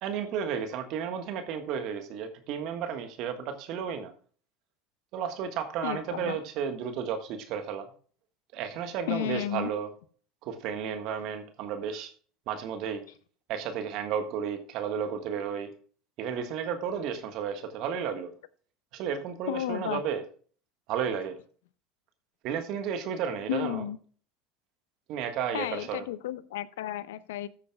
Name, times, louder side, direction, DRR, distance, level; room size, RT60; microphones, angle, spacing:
voice 1, 0.0-4.1 5.1-7.9 8.5-9.9 10.4-12.1 12.5-13.0 13.5-15.7 16.2-18.3 18.9-20.2 20.9-21.4 22.4-23.8 25.1-26.0, right 7 dB, 60° right, 1.5 m, -33 dB
voice 2, 5.8-6.4 9.1-9.7 19.5-20.0 23.5-24.0 25.5-27.5, left 12 dB, 80° left, 0.7 m, -33 dB
14.0 x 8.2 x 2.3 m
hypercardioid pair, 80°, 0 cm